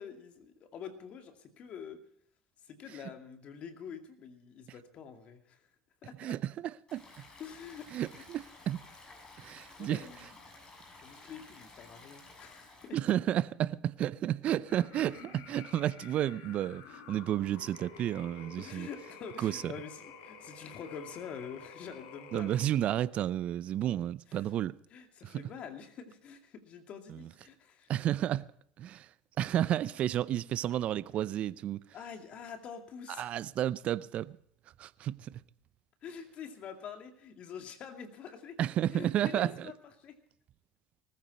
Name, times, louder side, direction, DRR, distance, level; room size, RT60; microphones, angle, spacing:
voice 1, 0.0-2.0 2.6-5.7 6.0-6.4 7.4-8.2 9.5-10.3 11.0-13.0 18.6-22.7 24.3-24.5 24.9-27.9 31.9-33.3 36.0-38.6 38.9-40.2, left 7 dB, 50° left, 2.4 m, -46 dB
voice 2, 6.2-7.2 7.9-8.8 9.4-10.0 12.9-18.9 19.4-19.7 22.3-24.8 25.2-25.5 27.1-27.3 27.9-28.5 28.8-29.1 29.4-31.8 33.2-34.4 34.8-35.4 38.6-39.7, right 11 dB, 50° right, 0.5 m, -32 dB
Stream, 6.9-12.9, left 3 dB, 30° left, 7.3 m, -54 dB
sound 1, 14.6-23.0, left 5 dB, 70° left, 3.7 m, -51 dB
19.5 x 14.5 x 4.2 m
hypercardioid pair, 75°, 3 cm